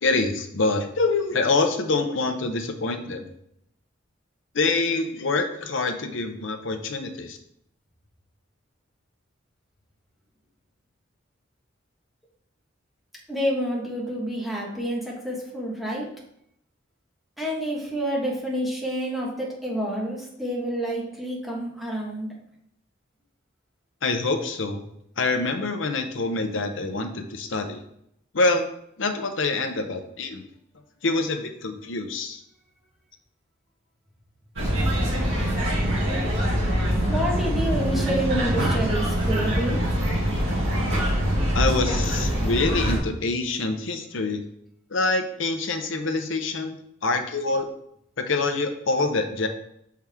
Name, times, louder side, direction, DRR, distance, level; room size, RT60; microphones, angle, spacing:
voice 1, 0.0-3.3 4.5-7.4 24.0-24.8 25.2-27.8 28.3-28.6 29.0-30.4 31.0-32.4 41.5-44.4 44.9-46.8 47.0-47.7 48.2-49.5, left 3 dB, 70° left, 6 dB, 0.8 m, -25 dB
voice 2, 13.3-16.1 17.4-22.3 37.1-39.8, right 1 dB, ahead, -4 dB, 1.4 m, -28 dB
sound 1, 34.6-43.0, equal, 70° right, 2.1 m, -24 dB
5.9 x 4.7 x 3.5 m, 0.74 s
head